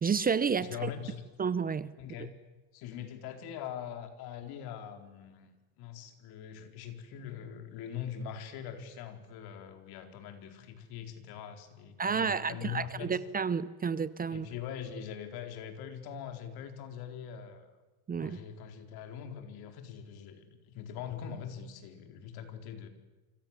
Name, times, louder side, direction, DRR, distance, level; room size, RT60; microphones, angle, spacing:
voice 1, 0.0-0.9 1.4-1.9 12.0-14.5 18.1-18.4, right 6 dB, 20° right, 0.9 m, -30 dB
voice 2, 0.6-1.2 2.0-2.3 2.7-5.5 5.8-13.2 14.3-17.7 18.2-22.9, left 8 dB, 65° left, 4.5 m, -42 dB
29.5 x 25.5 x 7.5 m
supercardioid pair, 115°, 41 cm